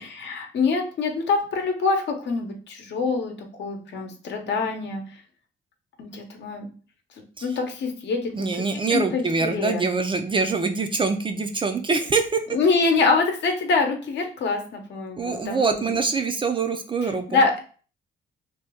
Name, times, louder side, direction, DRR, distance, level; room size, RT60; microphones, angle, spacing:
voice 1, 0.0-3.3 3.6-5.0 6.0-6.7 7.4-8.5 8.9-9.9 12.5-16.0 17.0-17.6, left 4 dB, 65° left, 3 dB, 0.8 m, -25 dB
voice 2, 8.3-12.4 15.2-17.4, right 4 dB, 25° right, 6 dB, 0.4 m, -24 dB
2.8 x 2.2 x 3.4 m, 0.39 s
cardioid pair, 90°, 20 cm